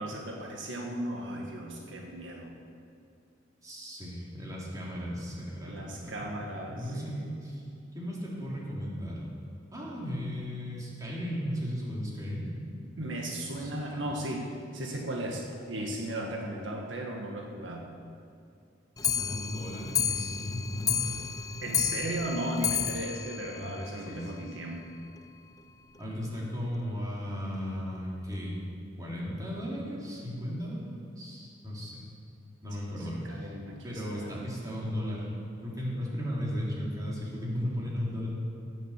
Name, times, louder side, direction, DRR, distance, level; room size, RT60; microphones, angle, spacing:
voice 1, 0.0-2.5 5.6-7.3 12.7-17.8 21.6-24.8 32.8-34.4, right 1 dB, 75° right, 0 dB, 1.6 m, -36 dB
voice 2, 3.6-6.3 6.7-7.6 7.9-9.3 9.7-12.4 13.4-14.0 19.0-21.5 23.6-23.7 24.1-24.5 26.0-28.6 29.0-30.9 31.2-32.1 32.6-33.5 33.8-35.3 35.6-38.4, equal, 20° right, -5 dB, 3.2 m, -36 dB
Clock, 19.0-24.5 24.8-24.9 25.2-25.3 25.6-25.7 25.9-26.0 26.7-26.8 27.5-27.6 28.3-28.4, left 8 dB, 20° left, 0.5 m, -32 dB
17.0 x 7.4 x 7.4 m, 2.4 s
head